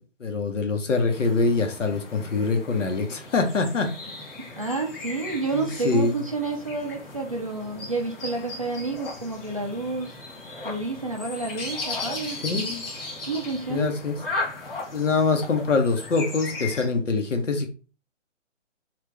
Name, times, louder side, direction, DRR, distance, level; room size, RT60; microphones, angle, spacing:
voice 1, 0.2-3.9 5.5-6.2 12.4-12.8 13.7-14.2 14.9-17.7, left 4 dB, 75° left, 1.0 m, -24 dB
sound 1, 1.1-16.9, left 2 dB, 50° left, 1.3 m, -37 dB
voice 2, 4.4-10.2 10.6-12.4 13.2-14.0, right 3 dB, 30° right, 0.4 m, -30 dB
3.1 x 2.5 x 3.4 m
hypercardioid pair, 150°, 37 cm